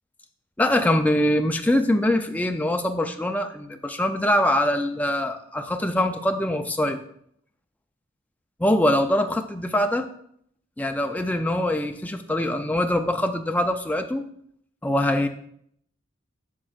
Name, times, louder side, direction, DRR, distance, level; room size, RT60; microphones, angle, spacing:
voice 1, 0.6-7.0 8.6-10.1 10.8-14.3 14.8-15.3, left 1 dB, 10° left, 6 dB, 0.4 m, -23 dB
8.4 x 6.4 x 2.5 m, 0.68 s
head